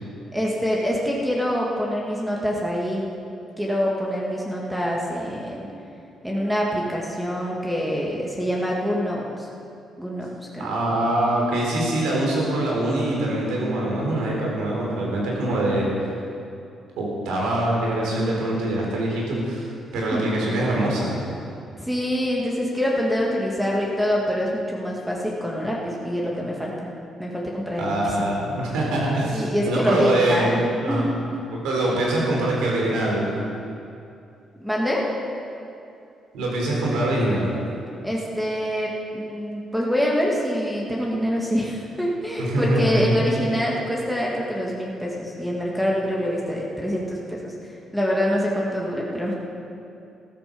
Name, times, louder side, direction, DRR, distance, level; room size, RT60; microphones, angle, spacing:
voice 1, 0.3-3.1 3.6-5.7 6.2-9.5 10.0-10.3 10.5-10.7 20.1-20.3 21.8-26.7 27.2-28.3 29.3-31.1 34.6-35.0 38.0-47.5 47.9-49.3, equal, 5° right, -3 dB, 2.2 m, -25 dB
voice 2, 10.6-15.9 17.0-21.1 27.8-31.0 31.5-33.3 36.3-37.5 42.4-43.3, right 1 dB, 90° right, -3 dB, 4.2 m, -23 dB
14.5 x 13.0 x 5.4 m, 2.6 s
cardioid pair, 90°, 0 cm